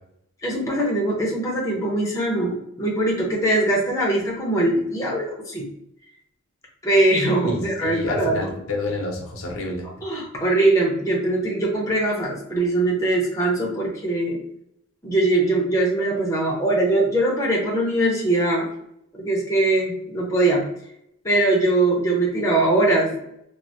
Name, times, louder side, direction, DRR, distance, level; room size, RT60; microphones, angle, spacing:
voice 1, 0.4-5.7 6.8-8.5 10.0-14.4 15.0-18.7 19.1-20.6 21.2-23.2, right 2 dB, 15° left, -3 dB, 0.7 m, -21 dB
voice 2, 7.4-9.9, left 2 dB, 85° left, 0 dB, 0.7 m, -29 dB
3.2 x 2.1 x 2.6 m, 0.73 s
head